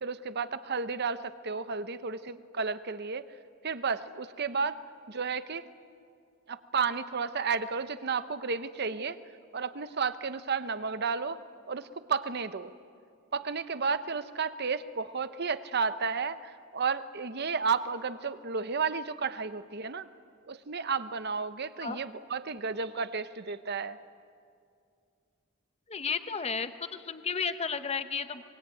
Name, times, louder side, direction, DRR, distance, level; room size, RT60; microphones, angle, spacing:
voice 1, 0.0-3.3 3.6-4.8 5.1-5.7 6.5-9.2 9.5-11.4 11.7-12.7 13.3-20.1 20.5-24.0, right 5 dB, 55° right, 12 dB, 0.9 m, -32 dB
voice 2, 25.9-28.4, left 5 dB, 30° left, 10 dB, 1.0 m, -33 dB
24.0 x 22.5 x 9.3 m, 2.3 s
head